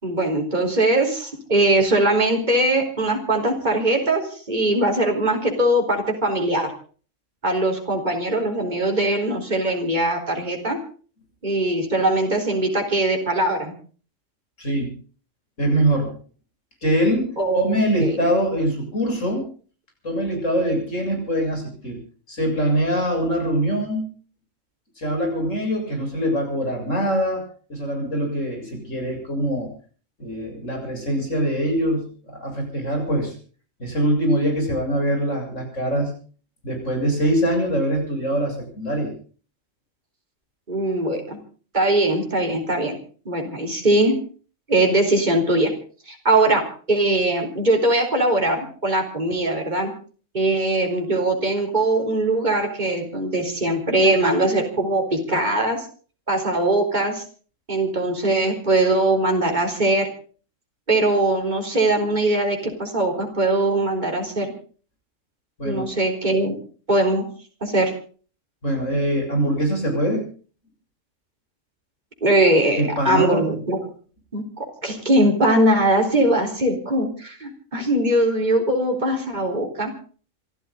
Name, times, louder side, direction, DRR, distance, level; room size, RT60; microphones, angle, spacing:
voice 1, 0.0-6.7 7.4-10.8 11.4-13.7 17.4-17.7 18.0-18.2 40.7-41.4 41.7-43.0 43.3-44.1 44.7-45.7 46.1-49.9 50.3-55.9 56.3-57.2 57.7-60.1 60.9-64.5 65.6-66.6 66.9-67.3 67.6-67.9 72.2-73.8 74.3-79.9, right 1 dB, 35° right, 2 dB, 4.2 m, -21 dB
voice 2, 14.6-14.9 15.6-16.2 16.8-19.4 20.0-22.0 22.3-24.1 25.0-27.4 27.7-29.7 30.2-33.3 33.8-36.1 36.6-39.1 65.6-65.9 68.6-70.2 72.7-73.4, equal, 85° left, 2 dB, 7.8 m, -23 dB
27.0 x 12.5 x 3.9 m, 0.41 s
omnidirectional pair, 1.3 m